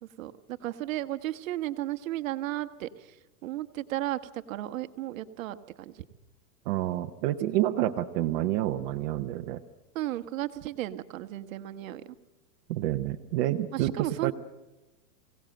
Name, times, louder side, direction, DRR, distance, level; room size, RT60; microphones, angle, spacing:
voice 1, 0.0-3.1 3.4-6.0 9.9-12.0 13.7-14.3, right 14 dB, 55° right, 11 dB, 1.2 m, -34 dB
voice 2, 6.7-9.6 12.7-14.3, right 14 dB, 40° right, 4 dB, 0.8 m, -28 dB
24.0 x 17.5 x 7.7 m, 1.1 s
hypercardioid pair, 145°, 47 cm